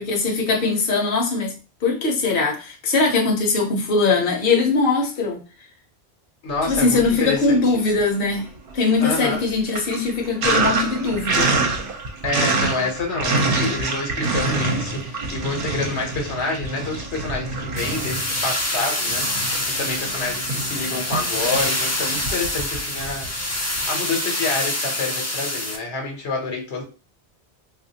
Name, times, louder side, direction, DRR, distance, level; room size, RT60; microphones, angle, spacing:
voice 1, 0.0-1.5 1.8-5.4 6.7-8.4 8.7-11.5, left 3 dB, 60° left, 0 dB, 0.9 m, -21 dB
voice 2, 6.4-7.8 9.0-9.4 12.2-26.8, left 3 dB, 80° left, 2 dB, 1.2 m, -28 dB
Sink (filling or washing), 6.6-7.5 7.8-23.9, right 3 dB, 60° right, 0.8 m, -27 dB
sound 1, 17.8-25.8, left 1 dB, 25° left, 0.3 m, -26 dB
3.4 x 2.5 x 2.7 m, 0.34 s
omnidirectional pair, 1.1 m